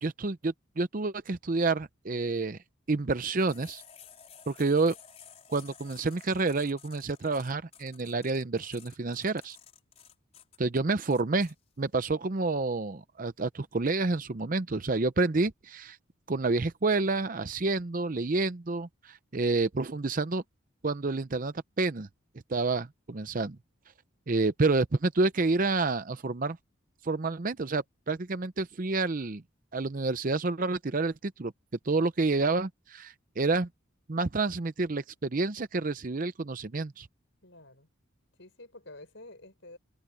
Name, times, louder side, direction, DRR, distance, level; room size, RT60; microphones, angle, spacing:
voice 1, 0.0-2.6 2.9-3.8 4.5-5.0 5.5-9.6 10.6-16.0 16.3-20.4 20.8-22.1 22.5-23.6 24.3-26.6 27.0-29.4 29.7-31.5 31.9-33.7 34.1-37.1, right 3 dB, 40° right, 0.6 m, -29 dB
sound 1, 3.4-11.5, left 8 dB, 30° left, 4.7 m, -53 dB
voice 2, 37.4-37.9 38.4-39.8, left 2 dB, 60° left, 7.1 m, -49 dB
head